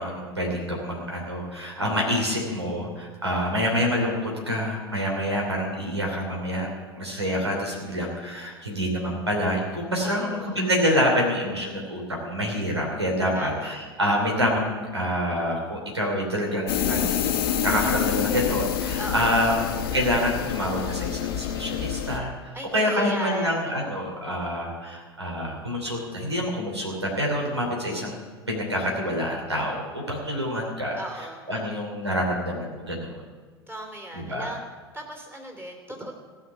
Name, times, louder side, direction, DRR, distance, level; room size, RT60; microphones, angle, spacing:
voice 1, 0.0-6.7 7.0-17.1 17.6-19.6 19.9-28.2 28.5-33.2 34.1-34.5, equal, 90° right, -1 dB, 3.0 m, -27 dB
voice 2, 3.4-3.8 10.0-10.7 13.3-13.8 17.8-18.2 19.0-19.6 22.5-23.9 30.9-31.8 33.7-34.6 34.9-36.1, right 1 dB, 15° right, 1 dB, 3.3 m, -38 dB
sound 1, 16.7-22.2, left 9 dB, 60° left, 1.1 m, -27 dB
16.0 x 5.8 x 10.0 m, 1.4 s
figure-of-eight pair, 80°, 13 cm